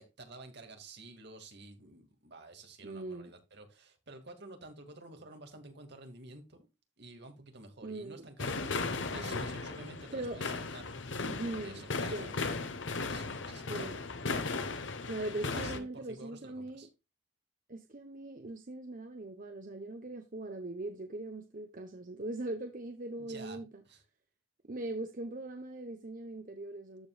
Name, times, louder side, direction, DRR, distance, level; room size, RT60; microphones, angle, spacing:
voice 1, 0.0-6.7 7.0-12.6 13.1-13.8 15.2-16.9 23.2-24.0, right 2 dB, 60° right, 2.2 m, -51 dB
voice 2, 2.8-3.3 7.8-8.2 9.1-9.4 10.1-10.4 11.3-12.3 13.7-14.0 15.0-16.9 17.7-23.8 24.6-27.1, right 2 dB, 45° right, 0.9 m, -41 dB
sound 1, 8.4-15.8, left 3 dB, 70° left, 1.1 m, -36 dB
14.0 x 5.3 x 2.4 m
head